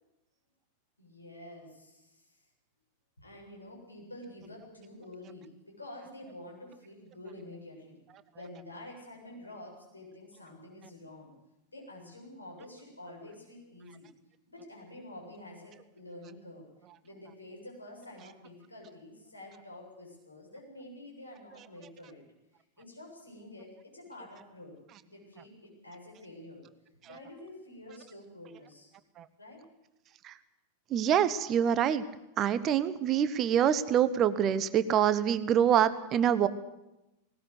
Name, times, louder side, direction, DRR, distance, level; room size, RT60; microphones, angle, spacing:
voice 1, 1.0-2.3 3.2-8.0 8.3-11.3 11.7-14.1 14.5-16.6 17.0-22.2 22.8-24.7 25.0-26.6 27.0-28.9 29.4-29.6, left 1 dB, 80° left, -1 dB, 7.7 m, -48 dB
voice 2, 30.9-32.0 32.4-36.5, right 9 dB, 30° right, 14 dB, 1.1 m, -25 dB
19.0 x 19.0 x 8.1 m, 0.94 s
figure-of-eight pair, 90°, 0 cm